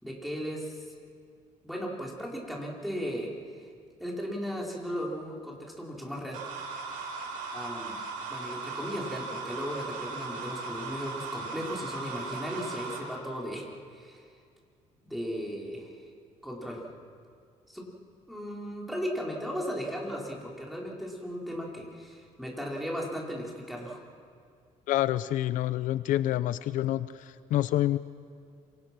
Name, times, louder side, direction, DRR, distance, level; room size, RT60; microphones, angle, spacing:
voice 1, 0.0-0.9 1.6-3.3 4.0-6.4 7.5-8.0 8.3-14.3 15.0-16.0 16.4-16.8 17.7-17.9 18.3-24.0, equal, ahead, -3 dB, 4.5 m, -36 dB
sound 1, 6.3-13.0, right 4 dB, 85° right, 6.5 m, -38 dB
voice 2, 24.9-28.0, left 13 dB, 75° left, 14 dB, 0.6 m, -27 dB
27.0 x 25.0 x 6.1 m, 2.3 s
cardioid pair, 135°, 14 cm